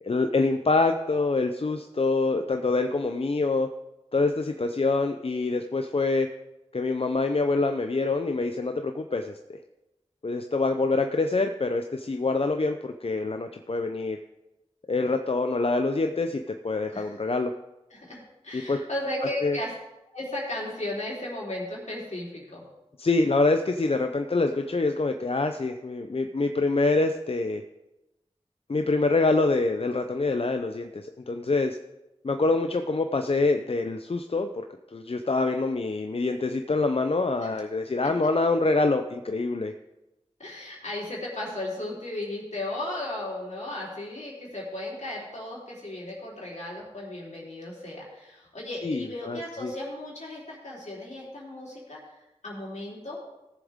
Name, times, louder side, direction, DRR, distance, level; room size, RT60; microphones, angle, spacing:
voice 1, 0.0-3.7 4.1-6.3 6.7-9.4 10.2-14.2 14.9-17.5 18.5-18.8 19.4-19.6 23.0-27.6 28.7-31.8 32.2-34.5 34.9-39.7 48.8-49.7, left 3 dB, 55° left, 6 dB, 0.6 m, -25 dB
voice 2, 17.9-19.7 20.1-22.6 37.4-37.5 38.2-38.3 40.4-52.0 52.4-53.2, left 1 dB, 80° left, -4 dB, 3.6 m, -35 dB
17.0 x 7.2 x 3.6 m, 0.98 s
wide cardioid pair, 40°, 12 cm